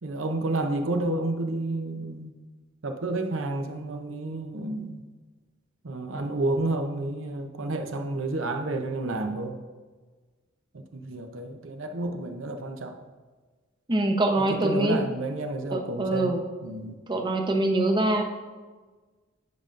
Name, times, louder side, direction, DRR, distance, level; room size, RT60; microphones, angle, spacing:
voice 1, 0.0-2.3 2.8-5.0 5.8-9.6 10.7-13.0 14.4-16.3 16.6-17.0, right 2 dB, 75° right, 5 dB, 0.7 m, -30 dB
voice 2, 13.9-15.0 15.7-16.4 17.1-18.2, right 2 dB, 25° right, 3 dB, 0.7 m, -24 dB
9.5 x 5.2 x 2.5 m, 1.3 s
head